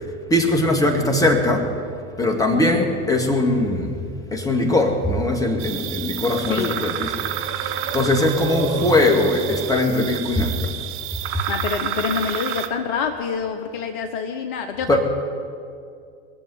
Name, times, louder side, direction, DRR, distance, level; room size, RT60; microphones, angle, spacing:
voice 1, 0.3-1.7 2.2-4.0 4.3-7.1 7.6-10.8 11.3-11.4 14.9-15.0, left 2 dB, 10° left, 3 dB, 2.0 m, -20 dB
voice 2, 2.5-2.8 6.5-6.7 11.5-15.0, left 6 dB, 50° left, 6 dB, 1.1 m, -27 dB
sound 1, 5.6-12.7, right 10 dB, 40° right, 1.1 m, -29 dB
20.5 x 7.3 x 9.7 m, 2.4 s
figure-of-eight pair, 85°, 33 cm